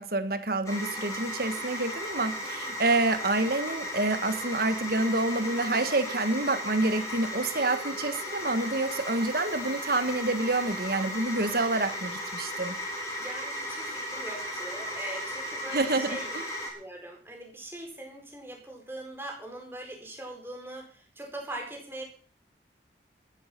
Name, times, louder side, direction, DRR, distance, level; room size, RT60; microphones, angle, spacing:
voice 1, 0.0-12.7 15.7-16.2, right 2 dB, 55° right, 10 dB, 1.6 m, -28 dB
sound 1, 0.6-16.7, equal, 15° left, 4.4 m, -36 dB
voice 2, 13.2-16.4 16.7-22.0, right 1 dB, 10° right, 1 dB, 4.4 m, -41 dB
14.0 x 11.0 x 5.9 m, 0.43 s
head